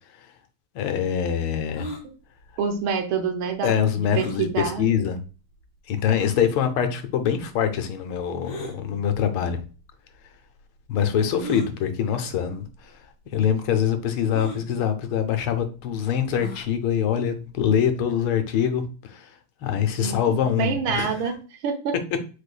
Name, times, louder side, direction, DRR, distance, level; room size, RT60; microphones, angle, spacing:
voice 1, 0.7-1.9 3.6-5.2 5.9-9.6 10.9-12.6 13.3-18.8 19.1-19.2 19.6-21.1, left 8 dB, 80° left, 1.5 m, -24 dB
sound 1, 1.7-2.0 4.1-4.4 5.2-5.3 6.1-6.4 8.4-8.8 9.8-9.9 11.4-11.7 12.6-12.8 13.0-13.1 14.3-14.6 16.3-16.7, right 1 dB, 65° left, 2.3 m, -35 dB
voice 2, 2.6-4.9 20.0-21.4 21.6-21.9, right 6 dB, 75° right, 1.6 m, -27 dB
5.0 x 4.3 x 2.3 m
omnidirectional pair, 2.3 m